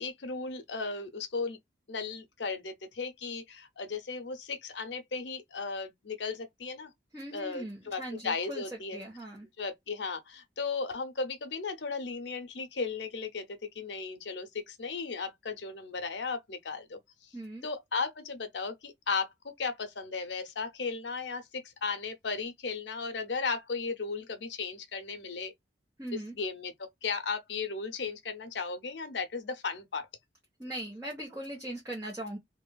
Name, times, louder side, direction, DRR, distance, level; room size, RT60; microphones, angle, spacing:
voice 1, 0.0-1.6 1.9-6.9 7.3-9.0 9.6-17.0 17.6-25.5 26.1-30.1, left 4 dB, 75° left, 0.7 m, -36 dB
voice 2, 7.1-8.6 8.9-9.5 17.3-17.7 26.0-26.3 30.6-32.4, right 1 dB, 15° right, 0.9 m, -39 dB
2.9 x 2.3 x 2.2 m
head